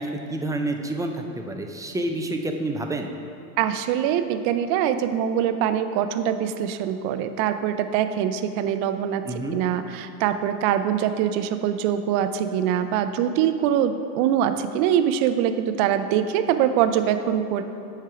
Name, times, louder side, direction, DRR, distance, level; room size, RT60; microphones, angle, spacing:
voice 1, 0.0-3.1 9.2-9.6, right 2 dB, 10° right, 4 dB, 0.5 m, -28 dB
voice 2, 3.6-9.2 9.5-17.6, right 9 dB, 50° right, 10 dB, 0.6 m, -23 dB
8.1 x 4.6 x 5.9 m, 2.8 s
hypercardioid pair, 100°, 45 cm